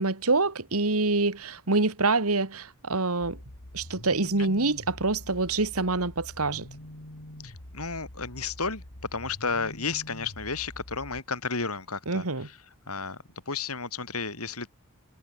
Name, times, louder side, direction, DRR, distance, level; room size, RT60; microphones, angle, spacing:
voice 1, 0.0-3.4 3.7-6.7 12.1-12.5, right 3 dB, 85° right, 2.3 m, -26 dB
sound 1, 3.2-11.2, left 1 dB, 70° left, 3.5 m, -45 dB
voice 2, 7.4-8.8 9.1-12.5 12.9-13.2 13.5-14.7, left 4 dB, 90° left, 7.5 m, -32 dB
head